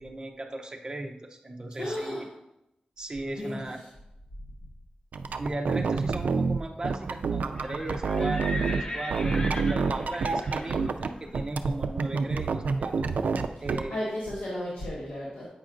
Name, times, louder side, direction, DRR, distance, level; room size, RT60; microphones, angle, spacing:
voice 1, 0.0-2.3 3.0-3.8 5.4-13.1 13.6-14.0, right 2 dB, 30° right, 2 dB, 0.7 m, -37 dB
voice 2, 1.8-2.2 3.4-3.6 13.9-15.5, left 1 dB, 85° left, -6 dB, 1.4 m, -33 dB
sound 1, 5.1-8.8 9.1-11.1 11.3-13.8, right 4 dB, 85° right, 0.3 m, -28 dB
Livestock farm animals working animals, 7.4-13.2, left 1 dB, 30° left, 0.7 m, -40 dB
8.4 x 5.8 x 2.5 m, 0.86 s
wide cardioid pair, 85°, 3 cm